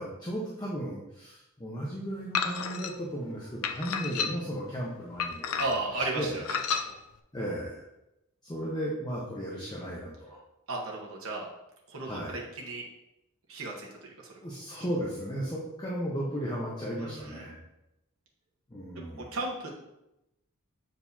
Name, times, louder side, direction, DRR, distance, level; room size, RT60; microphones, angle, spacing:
voice 1, 0.0-5.7 6.0-6.4 7.3-7.8 8.4-10.4 12.0-12.4 14.4-17.6 18.7-19.4, equal, 20° left, -4 dB, 0.9 m, -35 dB
sound 1, 2.3-2.9 3.6-4.6 5.2-5.9 6.4-6.9, left 6 dB, 80° left, 0.5 m, -31 dB
voice 2, 5.6-6.6 6.9-7.0 10.7-11.5 11.9-12.8 13.5-14.3 17.0-17.5 19.3-19.7, right 2 dB, 70° right, -2 dB, 1.2 m, -34 dB
7.8 x 4.6 x 2.7 m, 0.90 s
head